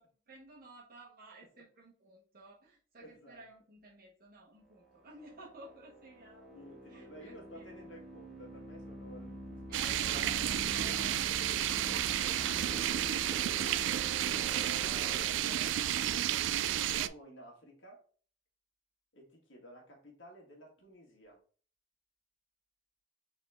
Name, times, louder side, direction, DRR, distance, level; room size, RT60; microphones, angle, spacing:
voice 1, 0.0-6.5 6.9-7.7 9.7-11.3 11.7-13.8, right 2 dB, 55° right, -5 dB, 1.1 m, -53 dB
voice 2, 3.0-3.4 6.5-10.5 14.6-18.0 19.1-21.4, equal, 85° left, -1 dB, 1.7 m, -53 dB
sound 1, 5.1-15.2, right 1 dB, ahead, 1.1 m, -46 dB
sound 2, 9.7-17.1, right 11 dB, 70° right, 0.3 m, -32 dB
4.1 x 3.7 x 3.5 m, 0.42 s
head